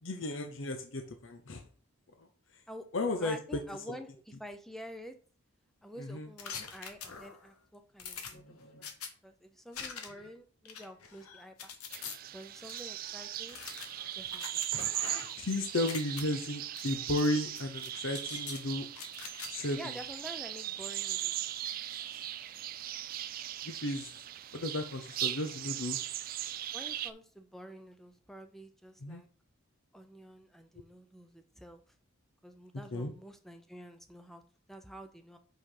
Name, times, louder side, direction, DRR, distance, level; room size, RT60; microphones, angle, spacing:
voice 1, 0.0-1.6 2.2-2.3 2.9-3.4 3.9-4.0 6.0-6.3 15.4-18.9 19.5-19.9 23.6-24.1 24.5-26.0 29.0-29.2 32.9-33.1, left 1 dB, 60° left, 5 dB, 0.8 m, -34 dB
voice 2, 3.2-5.2 5.8-8.9 9.2-11.8 12.3-13.6 14.2-15.0 19.7-21.4 26.7-29.3 29.9-31.8 32.4-34.4 34.7-35.4, equal, ahead, 7 dB, 0.6 m, -48 dB
sound 1, 6.4-7.5 8.0-9.1 9.7-10.3 10.7-12.2 12.7-12.8 13.5-15.5 15.7-16.2 16.8-17.3 17.6-18.6 19.0-19.5, left 6 dB, 85° left, 1.2 m, -44 dB
sound 2, 11.9-27.1, right 12 dB, 40° right, 0.3 m, -39 dB
5.8 x 5.5 x 4.9 m, 0.42 s
head